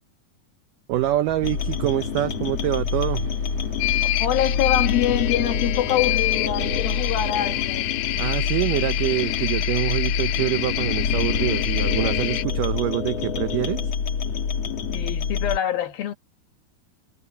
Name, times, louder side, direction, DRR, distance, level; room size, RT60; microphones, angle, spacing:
sound 1, 0.9-13.7, right 4 dB, 45° right, 5.9 m, -43 dB
voice 1, 0.9-3.3 8.2-13.9, right 15 dB, 85° right, 1.9 m, -25 dB
sound 2, 1.4-15.6, left 6 dB, 45° left, 2.9 m, -26 dB
sound 3, 3.8-12.4, left 16 dB, 85° left, 2.7 m, -28 dB
voice 2, 4.2-7.9 14.9-16.1, left 12 dB, 70° left, 3.0 m, -25 dB
omnidirectional pair, 4.7 m